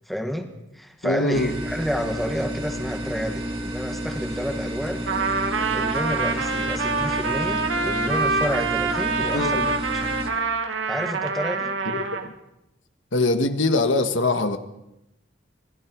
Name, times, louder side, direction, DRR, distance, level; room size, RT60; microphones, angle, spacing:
voice 1, 0.1-5.1 5.4-10.0 10.9-11.8, equal, ahead, 1.8 m, -30 dB
voice 2, 1.0-1.5 9.3-9.6 11.8-12.3 13.1-14.6, left 2 dB, 85° left, 1.6 m, -23 dB
sound 1, 1.3-10.3, equal, 30° right, 3.0 m, -31 dB
Trumpet, 5.1-12.3, right 4 dB, 90° right, 2.3 m, -26 dB
27.0 x 20.0 x 4.7 m
head